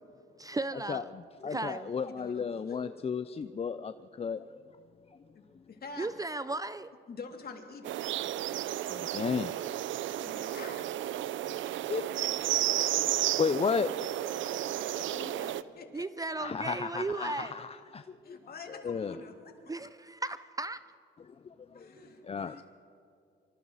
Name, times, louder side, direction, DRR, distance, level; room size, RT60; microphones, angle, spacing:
voice 1, 0.4-1.1 1.4-1.9 6.0-6.9 15.9-17.6 19.7-20.8, right 2 dB, 20° right, 0.6 m, -35 dB
voice 2, 0.9-4.6 8.8-9.5 10.4-10.5 11.8-12.1 12.8-14.1 15.2-15.3 16.4-18.4 18.7-19.2 21.2-21.3 21.7-21.9 22.2-22.6, left 6 dB, 30° left, 0.6 m, -34 dB
voice 3, 1.5-2.9 5.3-6.1 7.1-7.9 10.2-10.8 14.7-16.1 18.2-19.3 21.7-22.6, left 4 dB, 50° left, 3.2 m, -47 dB
sound 1, 7.8-15.6, right 13 dB, 75° right, 0.6 m, -32 dB
26.5 x 24.0 x 4.2 m
cardioid pair, 90°, 20 cm